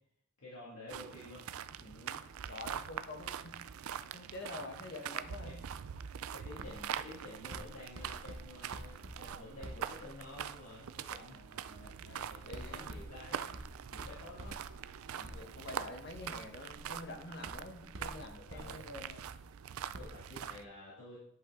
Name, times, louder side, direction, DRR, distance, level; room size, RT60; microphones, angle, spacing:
voice 1, 0.4-1.4 5.4-5.6 6.3-11.4 12.3-13.5 13.9-14.6 18.4-18.8 19.9-21.2, left 1 dB, 85° left, -8 dB, 2.2 m, -50 dB
sound 1, 0.9-20.6, right 8 dB, 80° right, 0.4 m, -44 dB
voice 2, 1.8-2.2 2.5-3.5 3.8-5.6 11.3-12.8 14.0-14.3 15.0-19.3, left 2 dB, 50° left, 4 dB, 1.2 m, -48 dB
Writing, 6.6-10.5 11.1-11.4 12.1-19.5 19.9-20.1, right 1 dB, 65° right, 0.9 m, -50 dB
10.5 x 5.5 x 3.7 m, 0.70 s
head